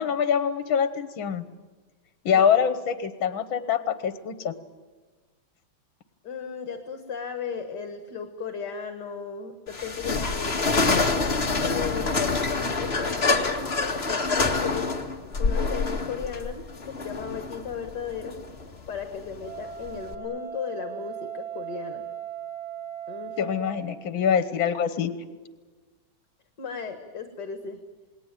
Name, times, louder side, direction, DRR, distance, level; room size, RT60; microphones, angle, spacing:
voice 1, 0.0-1.4 2.3-4.5 23.4-25.1, left 7 dB, 75° left, 11 dB, 1.9 m, -24 dB
voice 2, 6.2-14.9 15.4-18.4 18.9-22.0 23.1-23.6 26.6-27.8, left 6 dB, 55° left, 6 dB, 2.2 m, -36 dB
sound 1, 9.7-20.1, left 3 dB, 30° left, 2.1 m, -27 dB
Wind instrument woodwind instrument, 19.4-24.1, right 8 dB, 90° right, 7.1 m, -38 dB
28.0 x 20.0 x 9.1 m, 1.3 s
omnidirectional pair, 2.2 m